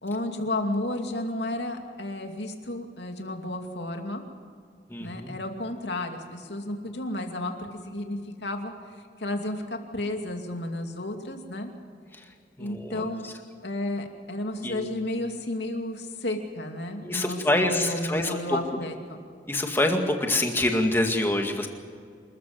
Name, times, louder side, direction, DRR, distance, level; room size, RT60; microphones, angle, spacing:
voice 1, 0.0-4.2 5.0-8.7 9.2-11.7 12.6-13.3 13.6-19.2, left 1 dB, 75° left, 4 dB, 2.5 m, -32 dB
voice 2, 4.9-5.3 12.1-12.2 12.6-13.3 14.6-14.9 17.0-18.6 19.5-21.7, left 1 dB, 15° left, 3 dB, 2.0 m, -26 dB
27.0 x 14.0 x 7.8 m, 2.2 s
head